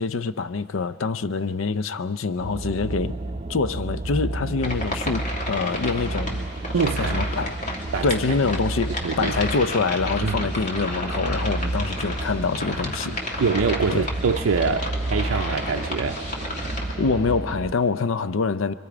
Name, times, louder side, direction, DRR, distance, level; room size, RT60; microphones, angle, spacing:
voice 1, 0.0-3.2 3.5-6.4 7.0-7.5 8.0-13.4 13.9-14.1 17.0-18.7, left 4 dB, 75° left, 0.5 m, -25 dB
sound 1, 2.4-17.7, right 2 dB, 30° right, 0.5 m, -31 dB
sound 2, 4.6-16.9, left 1 dB, 40° left, 2.3 m, -32 dB
voice 2, 6.7-7.2 7.9-8.2 9.0-9.3 10.2-10.5 13.4-16.3, right 5 dB, 90° right, 0.5 m, -24 dB
28.0 x 23.0 x 5.0 m
head